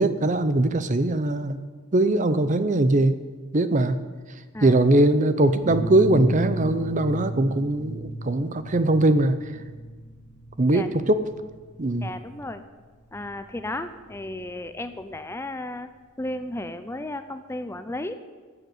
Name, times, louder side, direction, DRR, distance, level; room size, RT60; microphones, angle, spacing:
voice 1, 0.0-1.6 1.9-3.2 3.5-4.0 4.6-9.4 10.6-11.2 11.8-12.1, right 2 dB, 40° right, 12 dB, 0.7 m, -21 dB
sound 1, 5.6-15.0, right 1 dB, 55° right, 3.8 m, -35 dB
voice 2, 12.0-12.6 13.1-15.9 16.2-18.1, left 1 dB, 15° left, 10 dB, 0.5 m, -34 dB
11.0 x 8.0 x 9.2 m, 1.4 s
head